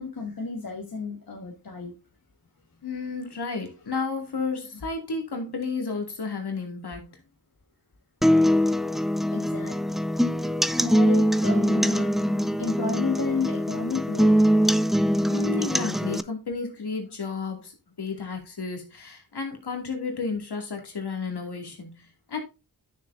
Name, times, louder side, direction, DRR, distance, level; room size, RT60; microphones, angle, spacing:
voice 1, 0.0-1.9 9.3-9.8 10.8-12.1 12.6-14.3, left 4 dB, 65° left, 1.6 m, -31 dB
voice 2, 2.8-7.2 15.3-22.4, left 4 dB, 80° left, 2.4 m, -32 dB
sound 1, 8.2-16.2, equal, ahead, 0.4 m, -23 dB
9.7 x 6.6 x 2.6 m
cardioid pair, 55°, 39 cm